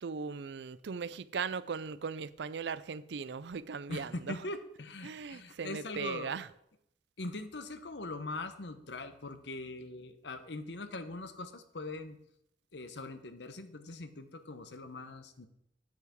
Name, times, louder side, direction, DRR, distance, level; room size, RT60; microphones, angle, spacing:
voice 1, 0.0-4.4 5.0-6.5, right 5 dB, 70° right, 0.5 m, -38 dB
voice 2, 3.9-6.4 7.2-12.2 12.7-15.5, left 2 dB, 70° left, 1.0 m, -42 dB
9.1 x 5.8 x 7.4 m
head